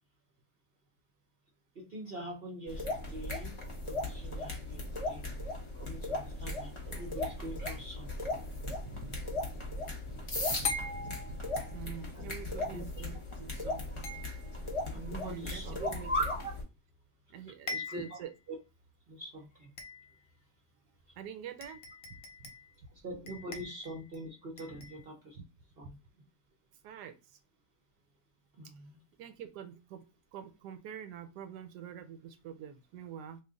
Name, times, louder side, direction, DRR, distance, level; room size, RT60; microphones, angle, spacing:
voice 1, 1.7-5.3 5.8-8.1 12.1-12.3 12.7-12.8 14.9-15.8 16.4-16.5 17.7-18.2 18.5-18.6 19.1-19.7 22.9-25.4 25.8-26.0 28.5-28.9, right 1 dB, 55° right, 0 dB, 0.7 m, -44 dB
sound 1, 2.7-16.6, left 2 dB, 30° left, 0.6 m, -37 dB
sound 2, 7.0-7.5 10.6-12.0 14.0-14.8 16.9-17.0 17.3-17.4 17.7-18.3 18.8-18.9 19.8-20.3 21.2-21.3 21.6-22.7 23.3-24.2 24.6-25.0, left 3 dB, 60° left, 0.9 m, -42 dB
voice 2, 8.6-9.2 10.1-14.1 15.2-16.1 17.3-18.3 21.2-21.8 22.1-22.5 25.4-25.5 26.8-27.4 29.2-33.4, right 8 dB, 75° right, 8 dB, 1.1 m, -46 dB
3.2 x 2.4 x 3.6 m, 0.28 s
omnidirectional pair, 1.9 m